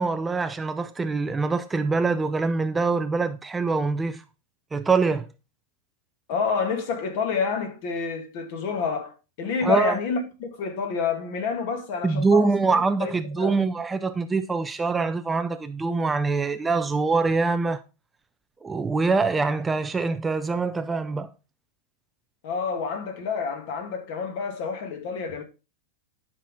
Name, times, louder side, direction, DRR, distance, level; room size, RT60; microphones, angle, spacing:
voice 1, 0.0-4.2 4.7-5.3 9.6-9.9 12.0-17.8 18.6-21.3, right 4 dB, 10° right, 0.4 m, -24 dB
voice 2, 6.3-13.6 22.4-25.4, left 5 dB, 45° left, 2.3 m, -28 dB
11.0 x 5.9 x 3.6 m
supercardioid pair, 155°, 0 cm